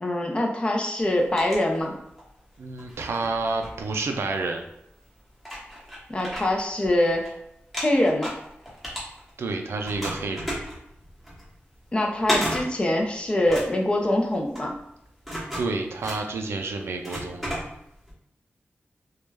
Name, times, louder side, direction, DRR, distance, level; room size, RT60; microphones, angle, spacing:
voice 1, 0.0-1.9 6.1-7.2 7.8-8.3 11.9-14.7, left 1 dB, 25° left, 1 dB, 0.4 m, -24 dB
sound 1, 1.0-2.3 2.7-4.4 5.0-5.1 5.4-7.3 7.6-9.5 9.8-18.1, equal, ahead, 0.8 m, -34 dB
voice 2, 2.6-4.6 9.4-10.5 15.6-17.6, right 3 dB, 85° right, 4 dB, 0.3 m, -29 dB
2.2 x 2.1 x 3.2 m, 0.78 s
wide cardioid pair, 150°, 4 cm